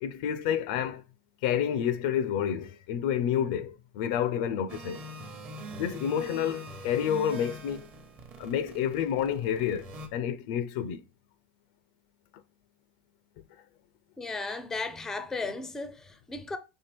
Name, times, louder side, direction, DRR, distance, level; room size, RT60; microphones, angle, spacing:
voice 1, 0.0-1.0 1.4-5.0 5.8-7.9 8.4-11.0, left 9 dB, 60° left, 0.5 m, -29 dB
sound 1, 4.7-10.1, right 1 dB, 35° right, 0.9 m, -43 dB
voice 2, 14.2-16.6, left 3 dB, 10° left, 0.5 m, -35 dB
4.4 x 3.3 x 3.4 m
supercardioid pair, 150°, 5 cm